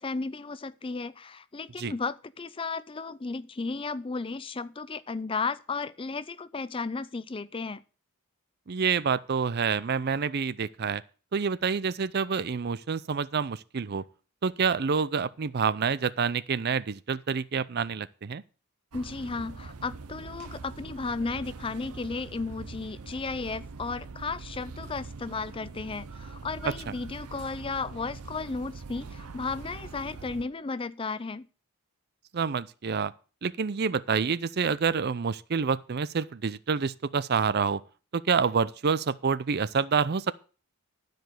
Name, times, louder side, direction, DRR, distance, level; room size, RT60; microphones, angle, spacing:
voice 1, 0.0-7.8 18.9-31.5, left 4 dB, 25° left, 0.4 m, -34 dB
voice 2, 8.7-11.0 11.3-14.0 14.4-18.4 26.6-26.9 32.3-33.1 33.4-37.8 38.1-40.3, right 6 dB, 45° right, 0.5 m, -27 dB
sound 1, 18.9-30.5, right 4 dB, 90° right, 0.7 m, -43 dB
12.5 x 5.2 x 7.7 m
head